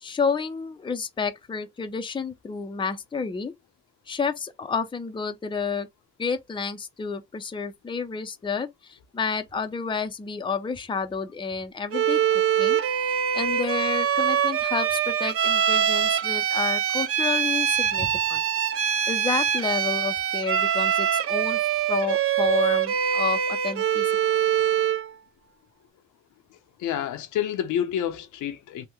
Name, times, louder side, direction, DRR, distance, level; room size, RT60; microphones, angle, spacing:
voice 1, 0.0-3.5 4.1-5.9 6.2-12.8 13.3-18.4 19.1-21.6 21.9-24.1, left 5 dB, 15° left, 0.5 m, -30 dB
Bowed string instrument, 11.9-25.1, right 9 dB, 50° right, 0.6 m, -24 dB
voice 2, 26.8-28.9, left 10 dB, 80° left, 0.7 m, -28 dB
3.4 x 2.1 x 3.0 m
cardioid pair, 90°, 30 cm